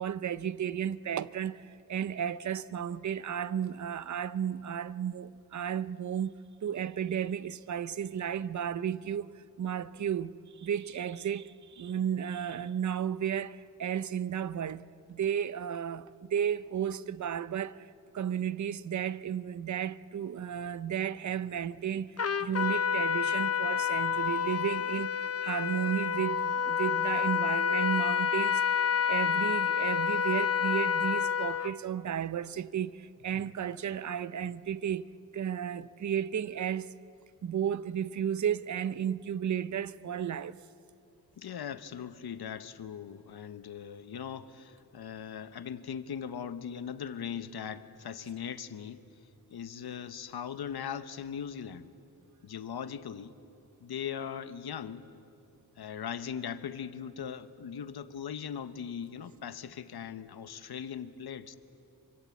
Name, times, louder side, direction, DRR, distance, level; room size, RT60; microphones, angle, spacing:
voice 1, 0.0-6.3 6.6-9.3 9.6-14.8 15.1-17.9 18.1-35.1 35.3-36.9 37.4-40.5, right 9 dB, 50° right, 0.6 m, -33 dB
Trumpet, 22.2-31.7, left 7 dB, 40° left, 0.8 m, -29 dB
voice 2, 41.4-49.0 49.5-51.9 52.4-53.3 53.8-55.0 55.8-61.6, left 8 dB, 90° left, 1.1 m, -39 dB
26.5 x 25.0 x 8.3 m
wide cardioid pair, 115°, 37 cm